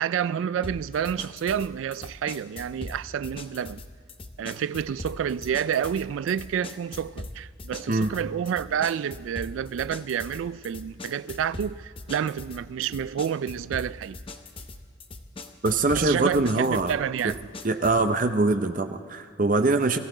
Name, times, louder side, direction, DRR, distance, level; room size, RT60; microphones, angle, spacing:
voice 1, 0.0-3.8 4.4-14.2 15.9-17.4, right 8 dB, 80° right, 0.3 m, -29 dB
sound 1, 0.6-18.1, left 2 dB, 25° left, 0.7 m, -41 dB
voice 2, 15.6-16.9 17.2-17.3 17.6-20.0, right 2 dB, 45° right, 0.7 m, -23 dB
22.5 x 15.0 x 3.9 m
head